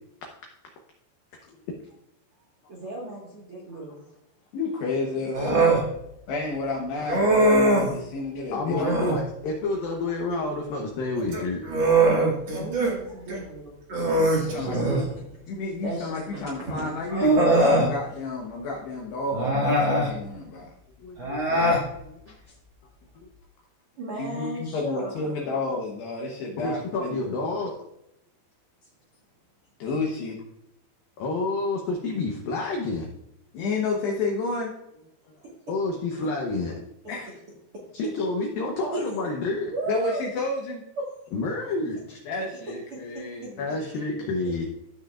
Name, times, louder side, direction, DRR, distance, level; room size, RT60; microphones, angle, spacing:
voice 1, 2.7-4.0 12.5-13.8 14.0-15.1 15.8-16.9 22.3-22.5 24.0-25.5 35.4-35.5 38.9-39.1 39.7-40.3 41.0-41.1 42.9-43.3, right 2 dB, 85° right, -5 dB, 1.2 m, -35 dB
voice 2, 4.5-5.8 6.3-9.2 14.4-14.9 15.5-20.7 21.5-21.8 24.2-27.2 29.8-30.4 33.5-34.7 37.1-37.4 39.9-40.8 42.3-43.7, left 3 dB, 70° left, -2 dB, 2.9 m, -31 dB
Human voice, 5.3-5.8 7.1-8.0 8.7-9.2 11.2-12.9 13.3-13.4 13.9-15.1 16.3-16.4 17.1-17.9 19.3-20.1 21.2-21.8, right 2 dB, 50° right, 1.4 m, -22 dB
voice 3, 8.5-11.7 21.0-21.5 22.0-22.2 23.2-23.3 26.6-27.8 31.2-33.1 35.7-36.7 37.9-39.7 41.3-42.2 43.6-44.7, left 2 dB, 90° left, 1 dB, 2.0 m, -29 dB
15.5 x 5.7 x 2.5 m, 0.83 s
omnidirectional pair, 5.6 m